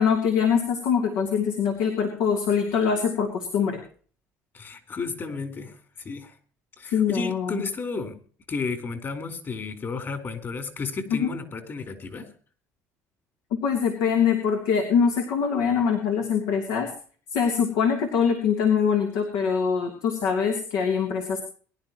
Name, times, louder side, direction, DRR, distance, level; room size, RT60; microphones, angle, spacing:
voice 1, 0.0-3.8 6.9-7.6 11.1-11.3 13.5-16.9 17.3-21.4, left 6 dB, 85° left, 3 dB, 3.0 m, -23 dB
voice 2, 4.5-6.3 6.8-8.2 8.5-12.3, left 4 dB, 40° left, 8 dB, 4.1 m, -33 dB
22.5 x 11.5 x 3.0 m, 0.43 s
cardioid pair, 100°, 6 cm